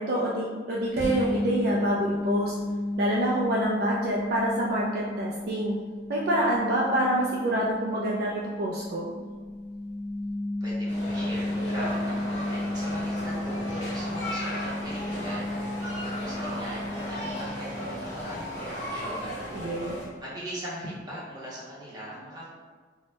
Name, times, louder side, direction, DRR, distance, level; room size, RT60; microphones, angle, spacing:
voice 1, 0.0-2.5 3.0-5.8 6.1-9.1 19.5-20.0, right 1 dB, 55° right, -4 dB, 0.3 m, -27 dB
sound 1, 1.0-18.5, left 1 dB, 65° left, 0.6 m, -33 dB
voice 2, 10.6-15.5 16.0-19.3 20.2-22.5, equal, 25° right, -7 dB, 0.7 m, -40 dB
sound 2, 10.9-20.1, equal, 40° left, 0.9 m, -35 dB
2.7 x 2.1 x 3.1 m, 1.5 s
head